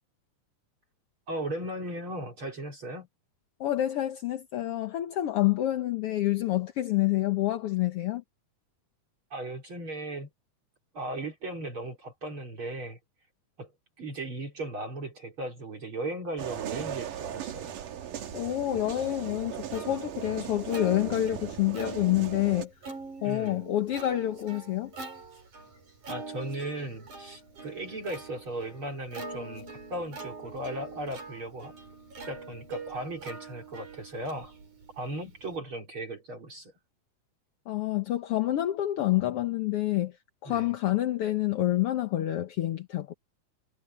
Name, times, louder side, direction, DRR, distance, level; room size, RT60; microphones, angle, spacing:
voice 1, 1.3-3.1 9.3-10.3 10.9-13.0 13.6-13.7 14.0-17.7 23.2-23.6 26.1-31.7 32.3-34.5 34.9-36.7 40.5-40.7, right 1 dB, 40° right, 4.2 m, -37 dB
voice 2, 3.6-8.2 18.3-22.7 23.2-24.9 37.7-40.2 40.4-43.1, left 14 dB, 60° left, 1.7 m, -28 dB
sound 1, 16.4-22.6, right 9 dB, 85° right, 3.4 m, -38 dB
Plucked string instrument, 18.8-35.6, right 3 dB, 65° right, 8.7 m, -44 dB
omnidirectional pair, 3.7 m